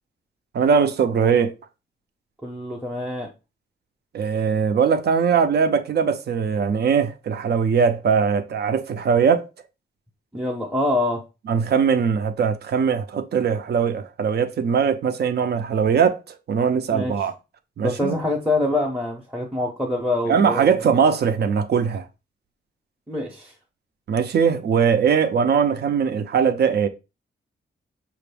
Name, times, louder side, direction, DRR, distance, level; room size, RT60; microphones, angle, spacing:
voice 1, 0.5-1.6 4.1-9.5 11.5-17.3 17.8-18.2 20.3-22.1 24.1-26.9, right 6 dB, 55° right, 0.5 m, -20 dB
voice 2, 2.4-3.3 10.3-11.2 16.9-17.1 17.8-20.7 23.1-23.5, left 2 dB, 5° right, 0.7 m, -25 dB
5.9 x 2.6 x 3.3 m
wide cardioid pair, 175°, 20 cm